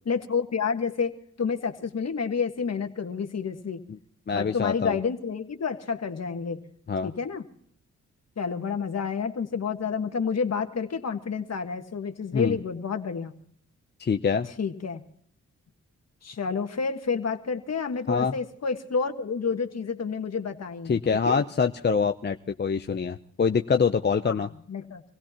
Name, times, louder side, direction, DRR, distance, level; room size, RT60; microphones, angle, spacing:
voice 1, 0.0-1.1 1.4-3.8 4.3-6.6 7.0-7.4 8.4-13.3 14.6-15.0 16.2-21.0 21.2-21.4 24.3-25.0, left 5 dB, 55° left, 6 dB, 1.6 m, -29 dB
voice 2, 4.3-5.0 6.9-7.1 12.3-12.6 14.0-14.5 18.1-18.3 20.9-24.5, left 5 dB, 35° left, 7 dB, 0.6 m, -25 dB
25.5 x 16.5 x 2.9 m, 0.65 s
cardioid pair, 75°, 31 cm